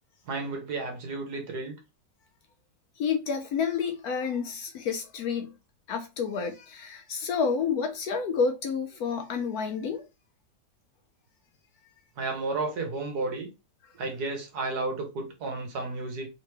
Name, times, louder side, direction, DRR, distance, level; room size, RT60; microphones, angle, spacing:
voice 1, 0.3-1.7 12.2-13.5 14.0-16.3, right 3 dB, 65° right, 1.6 m, -32 dB
voice 2, 3.0-5.5 5.9-10.0, left 6 dB, 70° left, 1.0 m, -29 dB
3.8 x 3.0 x 3.3 m
omnidirectional pair, 1.9 m